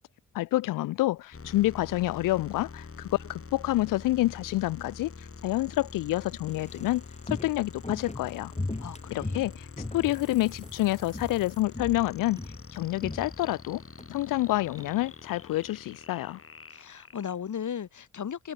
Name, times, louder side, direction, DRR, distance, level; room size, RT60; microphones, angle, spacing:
voice 1, 0.3-7.0 7.3-8.5 9.1-9.7 9.9-12.4 12.7-13.8 14.1-16.4, left 17 dB, 85° left, 0.6 m, -28 dB
sound 1, 1.3-17.8, left 4 dB, 45° left, 5.5 m, -46 dB
Walk footsteps, 6.5-10.8 11.1-11.5 11.7-14.1 14.4-14.5, left 2 dB, 20° left, 7.3 m, -38 dB
voice 2, 8.8-9.4 16.7-18.5, left 8 dB, 65° left, 3.8 m, -36 dB
sound 2, 9.5-9.6 10.0-11.6 12.0-12.1 12.4-12.8 13.1-13.5 14.1-14.2 14.8-14.9 15.6-15.7, right 1 dB, 10° right, 6.8 m, -58 dB
supercardioid pair, 45°, 32 cm